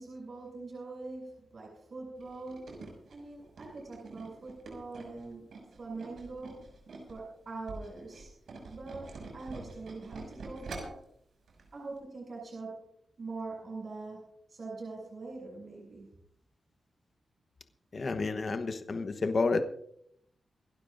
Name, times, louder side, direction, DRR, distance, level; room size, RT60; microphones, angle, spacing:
voice 1, 0.0-2.8 3.1-5.5 5.8-6.6 7.1-8.3 8.7-11.0 11.7-12.9 13.2-16.1, right 3 dB, 55° right, -2 dB, 7.2 m, -43 dB
Tools, 2.2-7.2 7.5-11.1 11.5-11.7 12.0-12.1, right 3 dB, 85° right, 6.3 m, -45 dB
voice 2, 17.9-19.6, left 3 dB, 50° left, 7 dB, 1.1 m, -30 dB
27.5 x 12.0 x 2.6 m, 0.70 s
wide cardioid pair, 110°, 0 cm